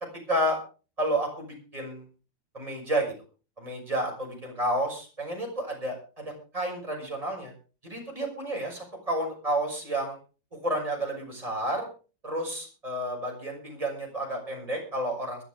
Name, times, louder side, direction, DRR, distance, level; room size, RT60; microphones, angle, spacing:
voice 1, 0.3-0.6 1.0-2.0 2.5-3.1 3.6-7.5 7.8-10.2 10.5-11.9 12.2-15.4, right 1 dB, 20° right, 0 dB, 6.5 m, -31 dB
22.0 x 11.5 x 3.5 m, 0.35 s
omnidirectional pair, 2.0 m